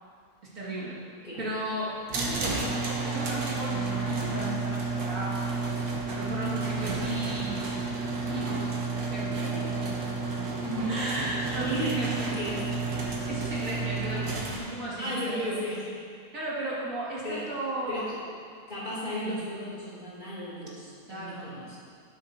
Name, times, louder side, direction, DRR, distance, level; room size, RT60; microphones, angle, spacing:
voice 1, 0.4-1.0 1.4-2.8 3.0-5.4 6.1-9.5 10.9-12.6 13.3-15.5 16.3-18.1 19.0-19.4 21.1-21.6, right 1 dB, 60° right, -8 dB, 2.4 m, -35 dB
sound 1, 2.1-14.6, right 3 dB, 85° right, 1.7 m, -31 dB
voice 2, 10.6-11.0 11.4-12.0 12.4-12.8 14.0-14.3 15.0-15.9 17.2-17.5 17.9-18.2 18.7-21.8, equal, 30° left, -9 dB, 2.7 m, -35 dB
12.5 x 9.3 x 2.7 m, 2.1 s
omnidirectional pair, 1.6 m